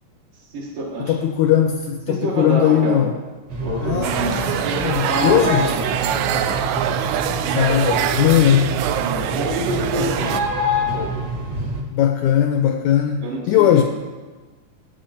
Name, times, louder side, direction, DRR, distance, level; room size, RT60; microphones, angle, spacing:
voice 1, 0.3-1.1 2.1-3.1 3.6-4.4 5.1-6.6 9.0-10.4 10.9-11.3 13.2-13.8, right 2 dB, 75° right, -6 dB, 3.3 m, -27 dB
voice 2, 1.0-3.1 3.8-5.7 7.4-8.7 11.9-13.8, left 10 dB, 85° left, 5 dB, 1.7 m, -19 dB
sound 1, 3.5-11.8, equal, 45° right, 1.2 m, -26 dB
sound 2, 4.0-10.4, right 10 dB, 90° right, 1.6 m, -24 dB
13.5 x 9.4 x 4.4 m, 1.3 s
omnidirectional pair, 4.0 m